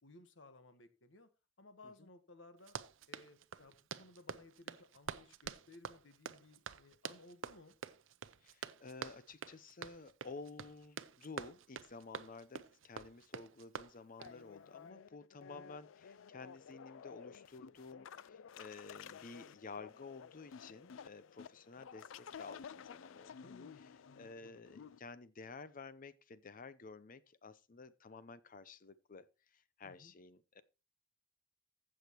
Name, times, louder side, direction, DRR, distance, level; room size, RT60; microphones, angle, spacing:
voice 1, 0.0-1.3 1.6-2.8 3.1-7.7 15.4-15.7 23.4-24.6 29.8-30.1, left 2 dB, 70° left, 1.3 m, -60 dB
Run, 2.6-14.4, right 6 dB, 90° right, 0.6 m, -48 dB
voice 2, 8.4-30.6, left 4 dB, 45° left, 0.7 m, -52 dB
sound 1, 14.2-25.0, left 7 dB, 90° left, 0.4 m, -53 dB
15.0 x 6.4 x 3.0 m
head